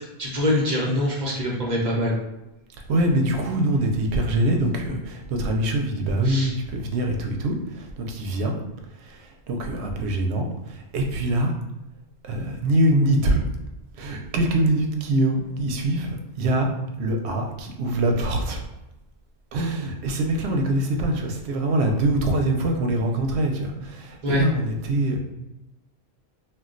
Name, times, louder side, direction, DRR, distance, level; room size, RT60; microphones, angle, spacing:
voice 1, 0.2-2.1 6.2-6.5 24.2-24.4, left 1 dB, 50° right, -4 dB, 0.8 m, -24 dB
voice 2, 2.9-8.6 9.0-11.5 12.2-13.4 14.0-16.7 17.0-18.6 19.5-25.2, right 1 dB, 80° right, 3 dB, 0.8 m, -24 dB
2.3 x 2.2 x 3.7 m, 0.96 s
omnidirectional pair, 1.1 m